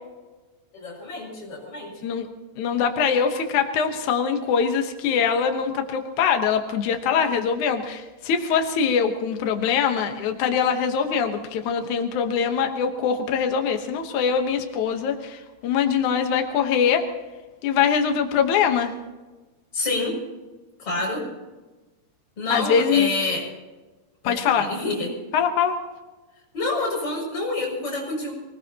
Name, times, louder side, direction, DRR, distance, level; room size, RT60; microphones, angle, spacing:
voice 1, 0.7-2.1 19.7-20.2 20.8-21.3 22.4-23.5 24.2-25.1 26.5-28.3, left 2 dB, 30° left, -2 dB, 7.3 m, -28 dB
voice 2, 2.6-17.1 17.6-18.9 22.5-23.1 24.2-24.7 25.3-25.8, left 7 dB, 80° left, 5 dB, 1.7 m, -23 dB
24.5 x 20.0 x 2.9 m, 1.2 s
omnidirectional pair, 5.3 m